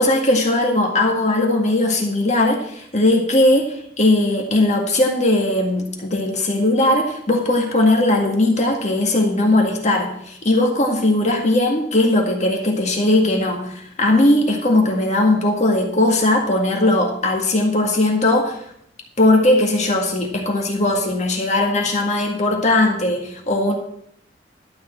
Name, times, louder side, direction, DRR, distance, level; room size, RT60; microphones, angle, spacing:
voice 1, 0.0-18.7 19.2-23.8, left 1 dB, 40° left, 1 dB, 1.9 m, -18 dB
12.0 x 5.5 x 7.9 m, 0.71 s
head